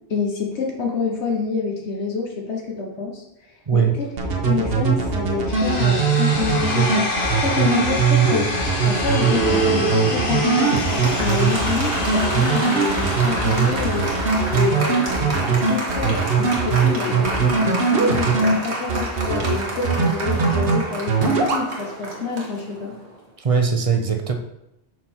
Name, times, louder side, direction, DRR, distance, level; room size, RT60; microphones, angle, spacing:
voice 1, 0.1-3.2 3.7-4.1 4.4-8.5 8.8-14.1 14.5-22.9, left 5 dB, 80° left, 0 dB, 1.4 m, -27 dB
voice 2, 3.7-4.0 23.4-24.3, right 6 dB, 35° right, 5 dB, 0.6 m, -20 dB
sound 1, 4.2-18.5 18.9-19.5 19.8-20.8 21.1-21.6, right 5 dB, 60° right, 1.2 m, -20 dB
sound 2, 5.5-15.5, left 2 dB, 55° left, 1.3 m, -28 dB
Applause, 9.1-23.1, right 2 dB, 75° right, 1.6 m, -28 dB
6.1 x 5.6 x 4.4 m, 0.87 s
omnidirectional pair, 1.1 m